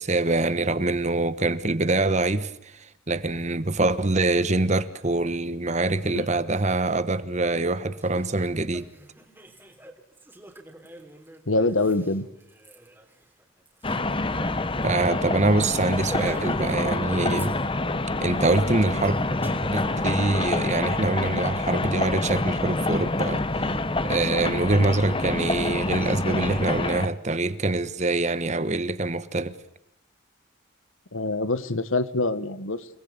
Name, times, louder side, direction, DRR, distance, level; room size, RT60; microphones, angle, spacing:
voice 1, 0.0-2.7 3.1-8.9 14.8-17.6 18.2-19.2 19.4-23.4 24.0-29.5, right 2 dB, 35° right, 1.2 m, -24 dB
Laughter, 7.5-7.6 7.9-14.6 14.9-15.0 15.3-15.5 15.9-16.8 17.1-17.9 18.4-19.8, right 1 dB, 10° right, 3.3 m, -44 dB
voice 2, 11.5-12.3 31.1-32.9, left 2 dB, 80° left, 1.5 m, -25 dB
sound 1, 13.8-27.1, left 2 dB, 25° left, 1.1 m, -27 dB
29.5 x 19.5 x 6.9 m
head